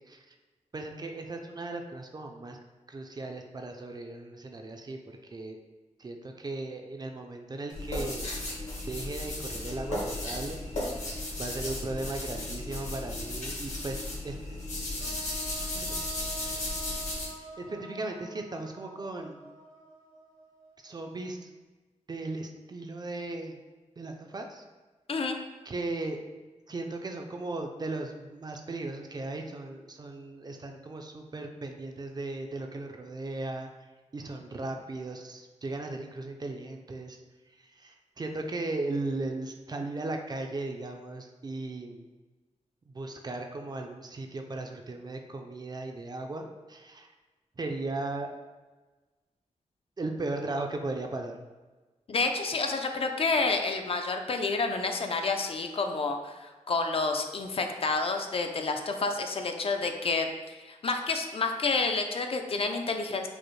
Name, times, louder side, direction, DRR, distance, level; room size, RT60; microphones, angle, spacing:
voice 1, 0.7-2.6 2.9-5.6 6.0-8.3 8.9-10.6 11.4-14.6 14.9-15.2 15.7-16.0 17.4-19.5 20.8-21.5 22.1-23.6 24.0-24.6 25.7-26.2 26.7-33.7 34.1-37.2 37.6-42.1 42.9-47.1 47.6-48.3 50.0-51.4, right 2 dB, 35° right, 4 dB, 0.3 m, -37 dB
sound 1, 7.7-17.3, left 1 dB, 70° left, 1.2 m, -35 dB
sound 2, 15.0-21.1, right 1 dB, 85° right, 1.0 m, -47 dB
voice 2, 52.1-63.3, left 3 dB, 50° left, 5 dB, 0.3 m, -29 dB
5.0 x 2.0 x 3.0 m, 1.2 s
wide cardioid pair, 130°, 13 cm